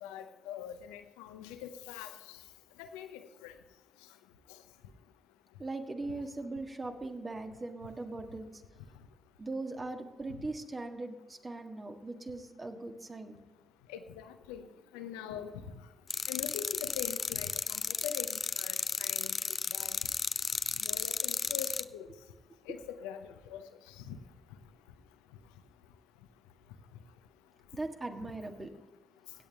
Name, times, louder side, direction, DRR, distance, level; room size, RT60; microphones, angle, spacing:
voice 1, 0.0-2.1 2.8-3.5 13.9-14.7 14.9-15.5 16.3-19.4 19.7-20.0 20.8-22.1 22.7-23.7 24.0-24.2, left 9 dB, 90° left, 9 dB, 0.6 m, -43 dB
voice 2, 5.6-8.5 9.4-13.4 22.1-22.2 22.7-22.8 27.7-28.7, right 2 dB, 35° right, 5 dB, 1.6 m, -40 dB
sound 1, 16.1-21.8, left 5 dB, 50° left, 0.4 m, -34 dB
16.5 x 8.5 x 3.5 m, 1.2 s
hypercardioid pair, 40°, 0 cm